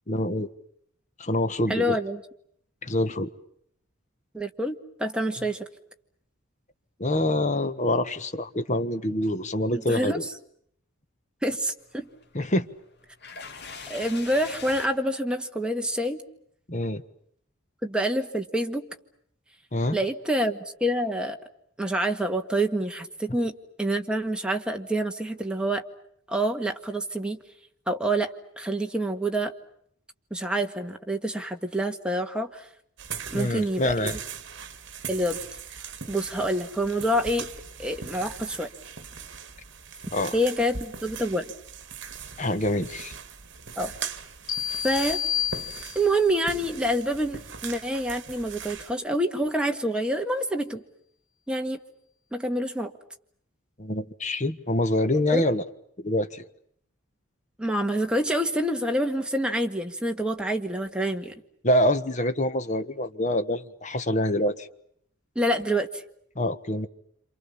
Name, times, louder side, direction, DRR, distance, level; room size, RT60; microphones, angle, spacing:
voice 1, 0.1-0.5 1.2-2.0 2.8-3.3 7.0-10.2 12.3-12.7 16.7-17.0 19.7-20.0 33.3-34.2 40.1-40.3 42.4-43.1 53.8-55.6 56.0-56.4 61.6-64.7 66.3-66.9, left 1 dB, 35° left, 10 dB, 1.4 m, -26 dB
voice 2, 1.7-2.2 4.3-5.7 9.7-10.2 11.4-12.1 13.9-16.2 17.8-18.9 19.9-21.4 21.8-25.8 26.3-27.4 27.9-29.5 30.3-32.7 33.3-34.2 35.1-35.4 36.1-37.5 37.8-38.7 40.3-41.5 43.8-43.9 44.8-45.2 46.0-50.8 51.5-51.8 52.3-52.9 55.3-55.4 57.6-61.3 65.4-66.0, right 1 dB, 5° right, 4 dB, 1.8 m, -27 dB
sound 1, 11.8-14.9, left 5 dB, 50° left, 2.6 m, -42 dB
sound 2, 33.0-48.9, right 6 dB, 55° right, 2.1 m, -40 dB
sound 3, 44.5-46.3, left 10 dB, 85° left, 2.2 m, -30 dB
28.0 x 27.5 x 7.2 m, 0.69 s
head